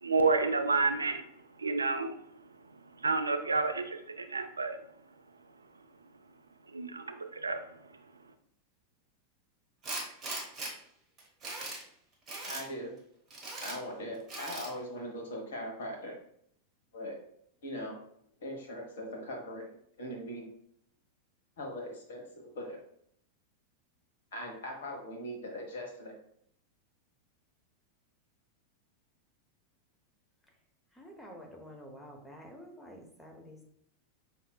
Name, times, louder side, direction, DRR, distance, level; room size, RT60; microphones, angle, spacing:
voice 1, 0.0-5.9 6.3-6.4 6.6-8.3, right 3 dB, 75° right, 8 dB, 0.3 m, -32 dB
Tools, 9.8-10.7 11.2-11.8 12.3-12.6 13.3-13.8 14.3-14.7, right 2 dB, 25° right, 1.2 m, -39 dB
voice 2, 12.4-12.9 13.6-16.2 16.9-17.2 17.6-18.0 18.4-19.7 20.0-20.5 21.6-22.8 24.3-26.2, equal, 60° left, 1 dB, 1.0 m, -40 dB
voice 3, 30.9-33.6, equal, 10° left, 0 dB, 0.8 m, -49 dB
5.3 x 2.8 x 2.2 m, 0.69 s
figure-of-eight pair, 90°, 0 cm